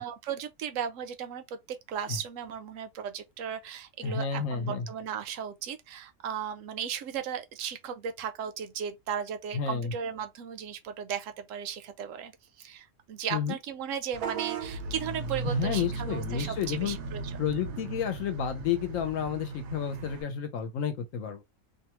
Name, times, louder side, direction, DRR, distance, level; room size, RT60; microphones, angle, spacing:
voice 1, 0.0-12.3 12.6-17.3, right 8 dB, 70° right, 0.9 m, -36 dB
voice 2, 4.0-4.9 9.5-9.9 13.3-13.6 15.4-17.0 17.4-21.4, left 7 dB, 70° left, 1.0 m, -31 dB
Vehicle horn car horn honking / Bus, 14.1-20.2, right 4 dB, 90° right, 1.1 m, -36 dB
2.7 x 2.2 x 2.9 m
omnidirectional pair, 1.5 m